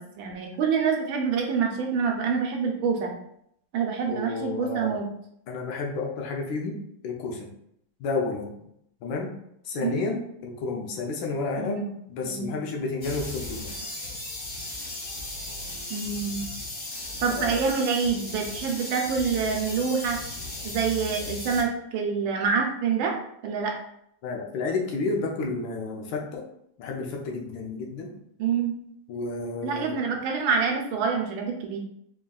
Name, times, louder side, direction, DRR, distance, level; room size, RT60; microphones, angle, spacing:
voice 1, 0.0-3.1 3.7-5.0 9.8-10.0 11.6-11.9 12.2-12.6 15.9-16.4 17.2-20.2 20.6-23.1 23.4-23.7 28.4-28.7 29.6-31.8, right 6 dB, 80° right, 2 dB, 1.5 m, -26 dB
voice 2, 4.1-5.0 5.5-6.8 7.0-7.5 8.0-8.5 9.0-9.3 9.6-11.8 12.1-13.7 17.3-17.6 24.2-26.4 26.8-28.1 29.1-30.0, left 3 dB, 75° left, 1 dB, 1.4 m, -31 dB
sound 1, 13.0-21.6, left 2 dB, 35° left, 1.0 m, -36 dB
4.0 x 3.6 x 2.3 m, 0.74 s
omnidirectional pair, 2.2 m